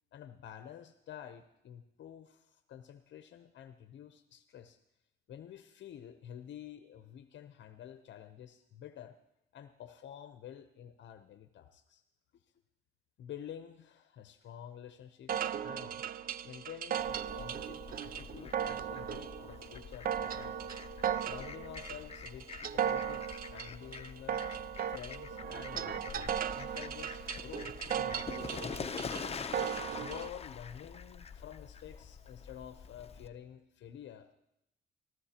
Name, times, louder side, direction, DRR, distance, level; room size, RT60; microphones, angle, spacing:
voice 1, 0.1-4.8 5.3-9.2 9.5-12.0 13.2-16.0 16.4-20.7 21.2-24.5 24.9-28.7 30.0-34.3, left 10 dB, 65° left, 9 dB, 0.7 m, -50 dB
sound 1, 15.3-30.3, right 9 dB, 50° right, 0.5 m, -37 dB
Fowl, 17.0-33.3, left 6 dB, 30° left, 0.7 m, -45 dB
22.0 x 14.0 x 2.9 m, 0.83 s
cardioid pair, 90°, 20 cm